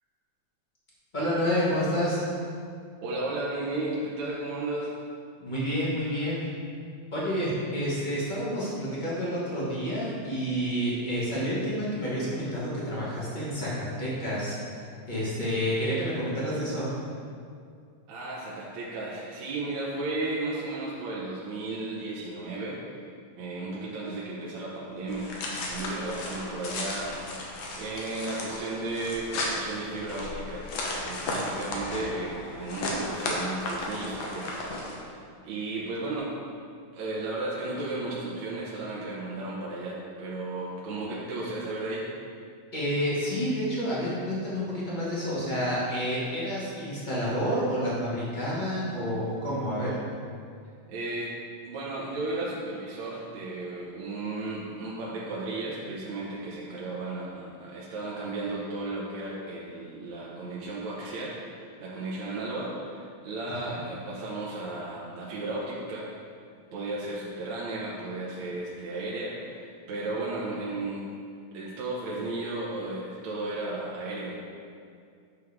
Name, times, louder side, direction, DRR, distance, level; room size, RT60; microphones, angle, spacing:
voice 1, 1.1-2.2 5.4-6.4 7.1-14.6 15.1-17.0 42.7-50.0 63.5-63.8, equal, 20° left, -8 dB, 1.7 m, -29 dB
voice 2, 3.0-4.9 18.1-22.8 23.4-30.7 31.0-36.4 36.9-42.1 50.9-51.3 51.6-66.1 66.7-71.1 71.5-74.3, right 2 dB, 70° right, -6 dB, 2.2 m, -34 dB
sound 1, 25.1-35.0, left 1 dB, 65° left, 2.1 m, -34 dB
9.5 x 6.4 x 3.6 m, 2.2 s
omnidirectional pair, 3.5 m